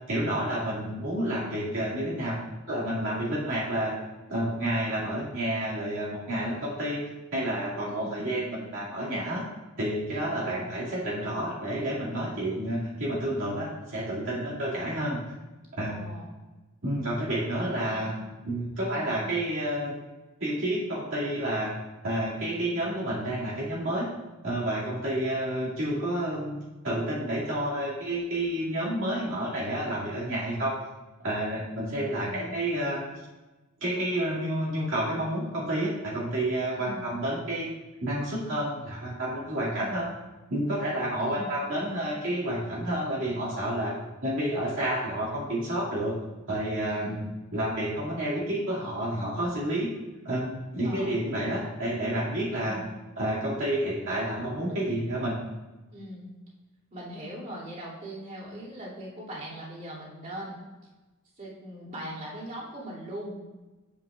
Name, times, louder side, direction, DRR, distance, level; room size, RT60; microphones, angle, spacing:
voice 1, 0.1-2.4 2.7-4.0 4.3-7.0 7.3-9.4 9.8-15.2 15.8-16.0 16.8-18.2 18.4-20.0 20.4-21.7 22.0-24.1 24.4-26.6 26.8-30.8 31.2-33.0 33.8-37.7 38.0-40.1 40.5-43.9 44.2-46.2 46.5-47.2 47.5-50.0 50.2-52.8 53.2-55.4, right 1 dB, 65° right, -8 dB, 2.2 m, -30 dB
voice 2, 10.4-10.7 14.4-14.6 15.9-16.4 17.6-18.1 18.8-19.1 32.1-32.7 36.7-37.1 39.7-40.0 41.2-41.5 46.9-47.3 50.8-51.2 52.5-52.9 55.9-56.3 56.9-60.6 61.4-63.5, equal, 40° right, -7 dB, 2.6 m, -41 dB
9.8 x 7.8 x 2.4 m, 1.1 s
head